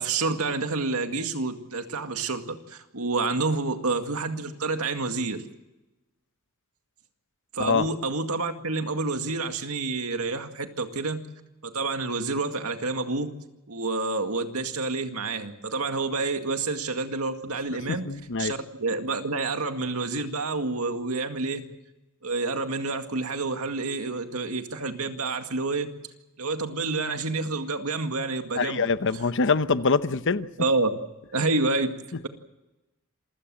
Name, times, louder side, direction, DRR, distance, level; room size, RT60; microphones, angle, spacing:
voice 1, 0.0-5.4 7.5-11.2 11.6-13.3 13.7-18.1 18.4-21.6 22.2-25.9 26.4-28.8 30.6-31.0 31.3-32.0, right 3 dB, 80° right, 6 dB, 2.1 m, -28 dB
voice 2, 17.9-18.5 28.6-30.5, left 4 dB, 60° left, 13 dB, 0.9 m, -24 dB
27.5 x 16.0 x 7.7 m, 1.0 s
head